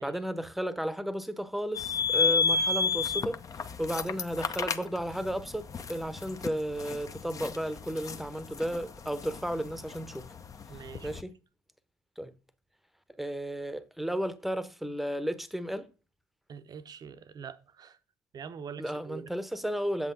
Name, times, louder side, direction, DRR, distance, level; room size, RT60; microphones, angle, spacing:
voice 1, 0.0-3.4 3.8-10.4 11.0-11.4 12.2-12.3 13.2-15.9 18.8-20.1, equal, ahead, 0.9 m, -33 dB
sound 1, 1.7-11.2, left 5 dB, 35° left, 0.7 m, -32 dB
voice 2, 10.7-11.1 16.5-18.0 18.3-19.3, right 7 dB, 40° right, 0.8 m, -44 dB
8.2 x 7.4 x 3.9 m
hypercardioid pair, 60°, 10 cm